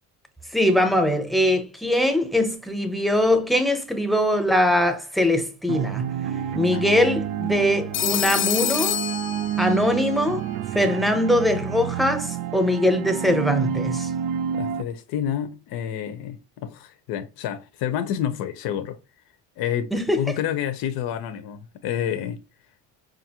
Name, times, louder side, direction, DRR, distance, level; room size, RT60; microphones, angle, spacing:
voice 1, 0.5-6.1 6.5-9.0 9.6-10.4 10.7-14.1 19.9-20.3, left 1 dB, ahead, 0.6 m, -22 dB
sound 1, 5.7-14.8, right 9 dB, 85° right, 0.5 m, -29 dB
Telephone, 7.9-10.0, left 10 dB, 35° left, 0.4 m, -26 dB
voice 2, 14.5-19.0 19.6-19.9 20.2-22.4, left 10 dB, 85° left, 0.6 m, -29 dB
5.0 x 2.5 x 2.8 m
cardioid pair, 140°, 36 cm